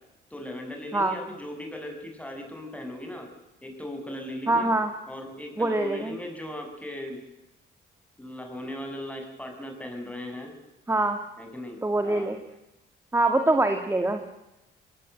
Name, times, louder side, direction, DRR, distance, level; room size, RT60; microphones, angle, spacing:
voice 1, 0.3-3.3 3.6-4.7 5.1-7.2 8.2-10.5 11.4-11.8 12.0-12.3, left 1 dB, 5° left, 3 dB, 7.2 m, -38 dB
voice 2, 4.5-4.9 5.6-6.1 10.9-11.2 11.8-12.4 13.1-14.2, right 2 dB, 15° right, 6 dB, 2.1 m, -24 dB
22.5 x 18.5 x 9.1 m, 0.95 s
cardioid pair, 90°, 20 cm